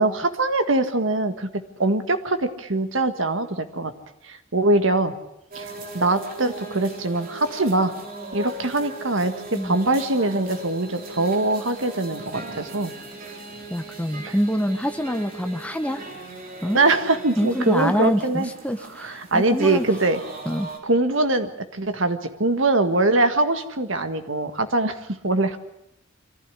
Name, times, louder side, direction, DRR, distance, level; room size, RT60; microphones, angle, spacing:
voice 1, 0.0-3.9 4.2-5.1 5.6-7.9 8.3-12.9 14.2-14.3 16.7-18.5 19.0-20.2 20.8-25.6, right 2 dB, 65° right, 9 dB, 1.8 m, -23 dB
sound 1, 5.5-20.8, right 2 dB, 45° right, 3.5 m, -38 dB
voice 2, 13.7-16.0 16.6-16.8 17.4-19.9 20.4-20.7, equal, 5° left, 8 dB, 1.2 m, -25 dB
24.5 x 15.0 x 9.9 m, 0.80 s
head